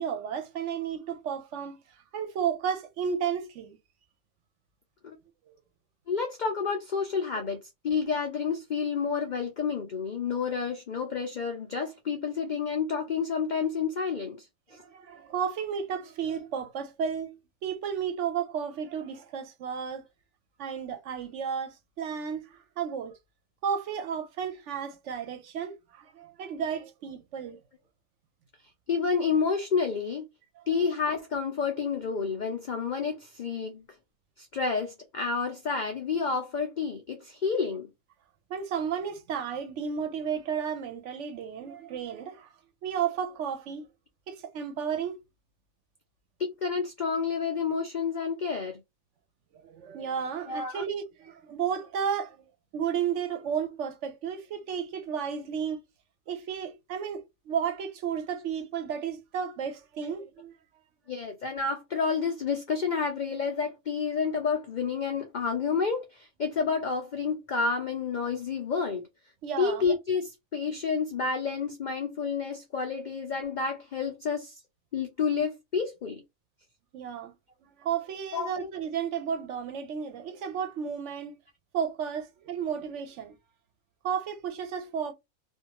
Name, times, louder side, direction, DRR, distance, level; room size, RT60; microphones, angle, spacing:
voice 1, 0.0-1.8 2.1-3.8 14.7-17.4 17.6-20.1 20.6-23.2 23.6-27.6 38.5-42.5 42.8-43.9 44.3-45.2 49.6-52.4 52.7-55.8 56.3-60.5 69.4-69.8 76.9-77.3 77.8-81.3 81.7-83.3 84.0-85.1, right 7 dB, 65° right, 0.9 m, -33 dB
voice 2, 6.1-7.6 7.8-14.4 28.9-30.2 30.7-33.8 34.4-37.9 46.6-48.8 50.5-50.8 61.1-69.1 69.6-74.6 74.9-76.2 78.3-78.7, left 5 dB, 80° left, 0.4 m, -29 dB
2.5 x 2.3 x 2.9 m
omnidirectional pair, 1.5 m